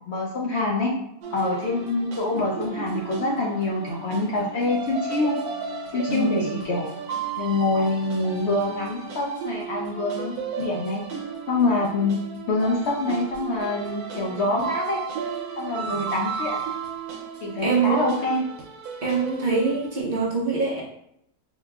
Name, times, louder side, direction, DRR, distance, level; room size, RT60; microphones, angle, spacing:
voice 1, 0.1-0.9 1.3-5.4 5.9-6.9 7.4-11.0 11.5-12.2 12.5-15.0 15.6-16.6 17.4-18.4, left 2 dB, 65° left, -2 dB, 0.7 m, -25 dB
sound 1, 1.2-20.0, right 6 dB, 85° right, 1.2 m, -34 dB
voice 2, 6.1-6.5 15.7-16.1 17.6-18.0 19.0-20.8, right 4 dB, 60° right, -3 dB, 0.5 m, -24 dB
4.5 x 2.2 x 2.3 m, 0.73 s
omnidirectional pair, 1.5 m